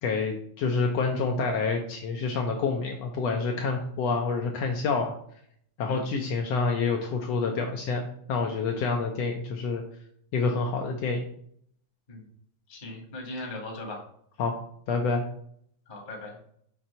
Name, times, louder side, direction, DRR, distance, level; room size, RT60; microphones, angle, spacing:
voice 1, 0.0-5.1 5.8-9.8 10.3-11.2 14.4-14.5 14.9-15.2, left 4 dB, 70° left, 2 dB, 1.7 m, -27 dB
voice 2, 12.7-14.0 15.9-16.3, left 2 dB, 25° left, 1 dB, 1.1 m, -38 dB
6.0 x 3.8 x 5.5 m, 0.66 s
omnidirectional pair, 3.4 m